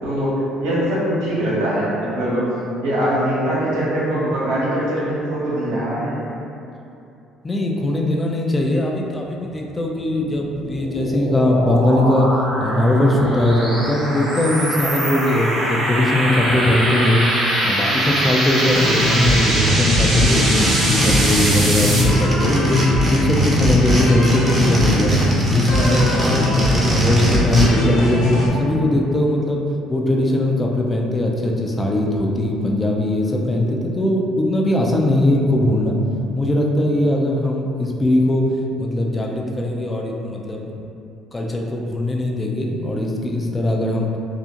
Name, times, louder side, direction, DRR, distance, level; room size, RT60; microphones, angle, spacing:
voice 1, 0.0-2.5 2.8-6.1, right 1 dB, 80° right, -8 dB, 0.8 m, -22 dB
voice 2, 7.4-12.3 12.6-17.2 17.6-22.8 23.1-25.2 25.5-29.6 29.9-36.0 36.4-38.4 38.8-40.7 41.3-44.1, left 1 dB, 25° left, 0 dB, 0.4 m, -20 dB
sound 1, 10.0-22.0, right 1 dB, 55° right, 1.0 m, -23 dB
sound 2, 18.7-28.5, equal, 70° left, 0.6 m, -20 dB
sound 3, 20.0-27.7, right 1 dB, 35° right, 0.7 m, -24 dB
2.4 x 2.1 x 2.8 m, 2.7 s
hypercardioid pair, 65°, 0 cm